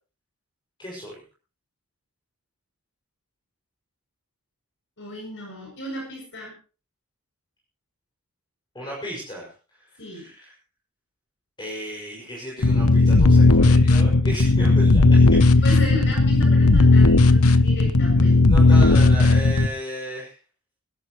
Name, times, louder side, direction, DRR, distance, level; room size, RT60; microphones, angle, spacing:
voice 1, 0.8-1.2 8.7-9.5 10.1-10.5 11.6-15.6 18.5-20.3, equal, 20° left, -4 dB, 6.3 m, -34 dB
voice 2, 5.0-6.5 10.0-10.3 15.6-18.4, left 2 dB, 60° left, -1 dB, 7.5 m, -34 dB
sound 1, 12.6-19.7, left 3 dB, 80° left, 1.1 m, -15 dB
25.0 x 12.5 x 3.2 m, 0.35 s
head